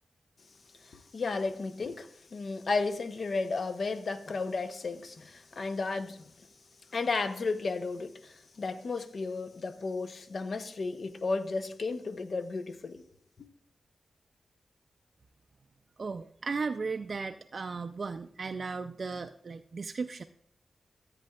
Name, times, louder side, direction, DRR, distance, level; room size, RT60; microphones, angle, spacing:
voice 1, 0.8-6.3 6.9-13.0, left 3 dB, 60° left, 0.7 m, -33 dB
voice 2, 16.0-20.2, right 4 dB, 55° right, 0.3 m, -36 dB
13.0 x 8.6 x 2.3 m
wide cardioid pair, 85°, 0 cm